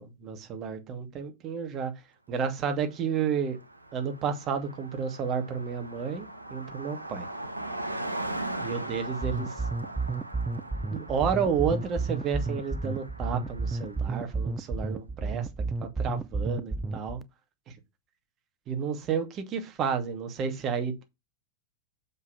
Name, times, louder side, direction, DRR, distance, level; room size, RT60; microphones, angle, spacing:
voice 1, 0.0-1.9 2.3-3.6 3.9-7.3 8.5-9.6 10.9-15.5 15.8-17.2 17.7-17.8 18.7-21.0, right 6 dB, 30° right, 2.6 m, -31 dB
Car passing by, 3.0-3.1 3.3-14.3, right 1 dB, 85° right, 1.2 m, -40 dB
sound 1, 9.2-17.2, right 3 dB, 15° right, 0.8 m, -31 dB
7.3 x 5.9 x 6.1 m
figure-of-eight pair, 90°, 0 cm